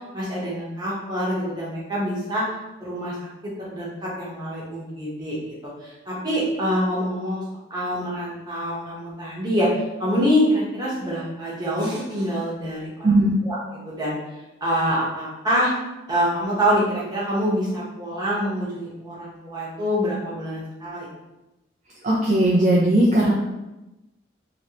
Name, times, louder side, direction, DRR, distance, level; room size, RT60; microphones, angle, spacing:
voice 1, 0.1-2.4 2.8-3.2 3.4-5.4 5.6-7.4 7.7-9.7 10.0-13.6 13.8-14.2 14.6-15.7 16.1-21.1, equal, 20° right, -7 dB, 1.0 m, -25 dB
voice 2, 13.0-13.3 22.0-23.3, right 1 dB, 40° right, -6 dB, 0.5 m, -18 dB
3.0 x 3.0 x 2.8 m, 0.98 s
head